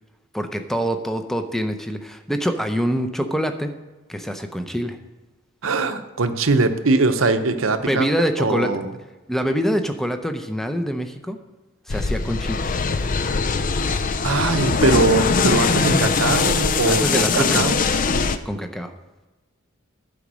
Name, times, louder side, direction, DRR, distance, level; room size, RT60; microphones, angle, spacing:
voice 1, 0.3-3.7 4.1-5.0 7.9-8.8 9.3-11.4 11.9-12.7 16.9-17.7 18.5-18.9, equal, ahead, 7 dB, 0.6 m, -25 dB
voice 2, 5.6-8.1 8.4-8.9 14.2-17.8, right 3 dB, 75° right, 8 dB, 0.8 m, -21 dB
sound 1, 11.9-18.4, left 4 dB, 40° left, 0.5 m, -21 dB
11.5 x 5.1 x 6.2 m, 1.1 s
head